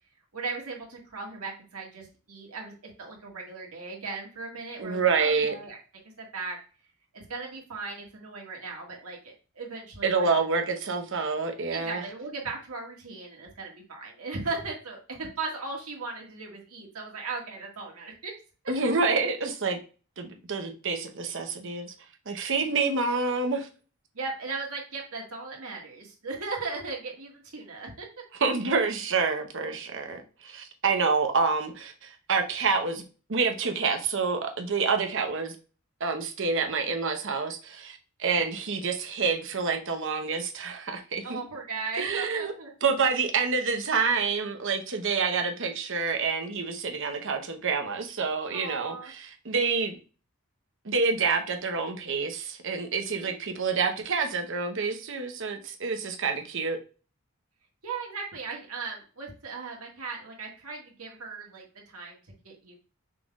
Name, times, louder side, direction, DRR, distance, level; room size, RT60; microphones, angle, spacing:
voice 1, 0.3-5.8 6.2-6.6 7.1-10.5 11.7-18.3 22.6-22.9 24.1-28.1 41.2-42.7 48.5-49.1 53.4-53.6 57.8-62.7, right 4 dB, 80° right, -1 dB, 1.8 m, -37 dB
voice 2, 4.8-5.5 10.0-12.0 18.7-19.8 20.2-21.9 22.3-23.7 28.4-33.0 33.3-35.5 36.0-41.4 42.0-42.5 42.8-50.0 50.8-56.8, right 4 dB, 60° right, 5 dB, 0.9 m, -28 dB
5.9 x 3.8 x 2.4 m, 0.35 s
head